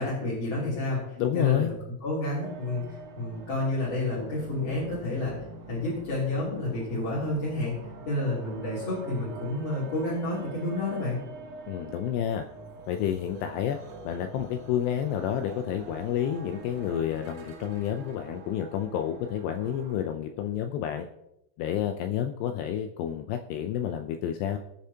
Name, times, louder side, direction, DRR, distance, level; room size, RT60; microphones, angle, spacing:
voice 1, 0.0-1.7 2.0-5.3 5.7-7.7 8.1-11.2, left 2 dB, 45° left, -8 dB, 4.1 m, -30 dB
voice 2, 1.2-1.7 11.7-12.5 12.9-13.8 14.1-21.1 21.6-24.6, left 10 dB, 85° left, 6 dB, 2.4 m, -30 dB
sound 1, 2.4-20.0, right 3 dB, 75° right, 1.9 m, -45 dB
20.5 x 7.0 x 2.8 m, 0.84 s
omnidirectional pair, 5.4 m